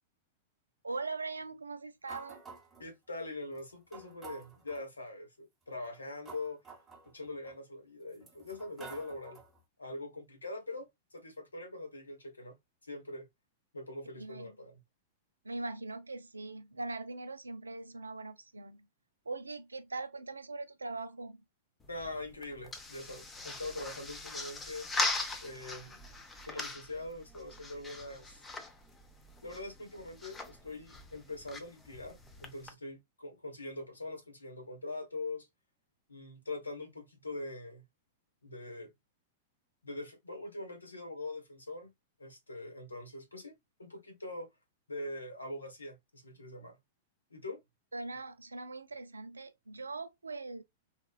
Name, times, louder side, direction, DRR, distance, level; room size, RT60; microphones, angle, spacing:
voice 1, 0.8-2.4 14.2-14.5 15.4-18.9 19.3-21.4 47.9-50.6, right 3 dB, 80° right, 0.4 m, -41 dB
sound 1, 2.1-2.9 3.5-3.6 3.9-4.9 5.7-7.5 8.1-9.6, right 4 dB, 15° right, 0.8 m, -51 dB
voice 2, 2.8-6.6 7.1-9.4 9.8-12.5 12.8-13.2 13.7-14.8 21.9-24.9 25.4-26.0 26.5-28.4 29.4-35.5 36.1-37.8 38.4-38.9 39.8-41.9 42.2-43.5 43.8-44.5 44.9-46.8 47.3-47.6, left 2 dB, 80° left, 0.9 m, -43 dB
sound 2, 21.8-32.7, left 2 dB, 15° left, 0.5 m, -41 dB
2.9 x 2.1 x 2.2 m
figure-of-eight pair, 100°, 0 cm